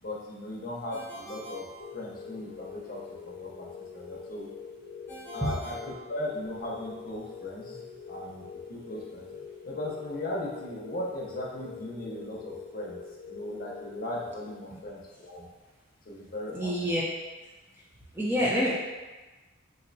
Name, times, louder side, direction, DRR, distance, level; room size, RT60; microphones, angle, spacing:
voice 1, 0.0-1.7 1.9-4.5 5.3-5.7 6.1-7.8 8.1-9.3 9.6-15.5 16.0-16.9, left 1 dB, 45° left, -3 dB, 0.6 m, -38 dB
Ringtone, 0.9-2.6 5.1-6.8, right 1 dB, 10° left, 0.8 m, -46 dB
sound 1, 1.8-14.9, left 6 dB, 80° left, 0.6 m, -44 dB
voice 2, 16.5-17.0 18.1-18.7, equal, 10° right, -6 dB, 0.4 m, -26 dB
4.1 x 2.6 x 2.6 m, 1.2 s
head